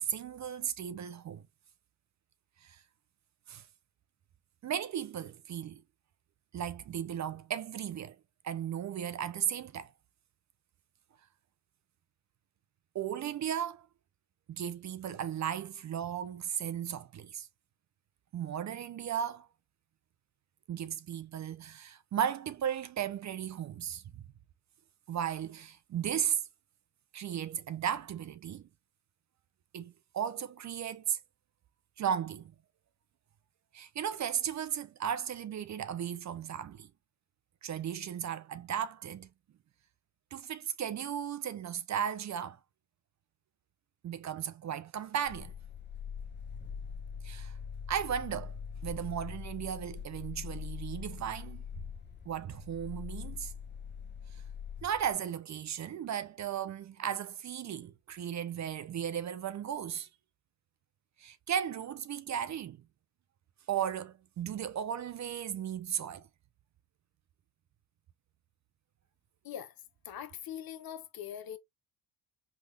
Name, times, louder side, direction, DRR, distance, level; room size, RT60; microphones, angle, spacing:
voice 1, 0.0-1.4 2.6-2.8 3.5-3.7 4.6-5.8 6.5-8.2 8.4-9.9 12.9-13.9 14.5-17.5 18.3-19.5 20.7-24.2 25.1-26.4 27.1-28.7 29.7-31.2 32.0-32.5 33.7-36.9 37.6-39.3 40.3-42.6 44.0-45.5 47.2-47.5 47.9-51.6 52.3-53.5 54.3-54.4 54.8-60.1 61.2-62.8 63.7-66.3, right 9 dB, 40° right, 0.5 m, -35 dB
sound 1, 45.3-55.1, left 7 dB, 25° left, 0.7 m, -43 dB
voice 2, 70.0-71.6, left 10 dB, 50° left, 0.9 m, -42 dB
3.6 x 2.3 x 3.2 m
cardioid pair, 85°, 45 cm